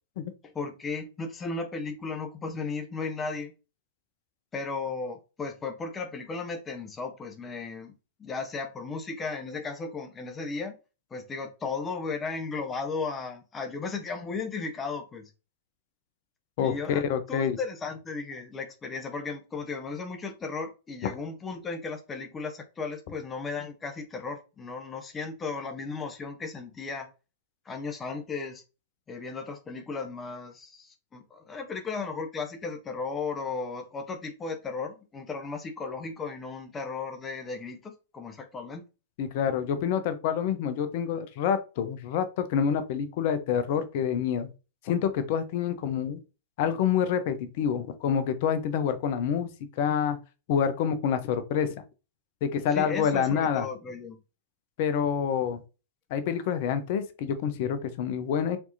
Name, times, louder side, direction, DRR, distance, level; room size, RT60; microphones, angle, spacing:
voice 1, 0.4-3.5 4.5-7.9 8.2-10.8 11.1-15.3 16.6-17.0 17.3-27.1 27.7-28.6 29.1-38.8 52.7-54.2, left 4 dB, 20° left, 0.8 m, -35 dB
voice 2, 16.6-17.6 39.2-44.5 44.8-46.2 46.6-49.5 49.8-50.2 50.5-51.7 52.4-53.7 54.8-55.6 56.1-58.6, left 8 dB, 55° left, 0.7 m, -27 dB
4.4 x 2.8 x 2.7 m
hypercardioid pair, 105°, 0 cm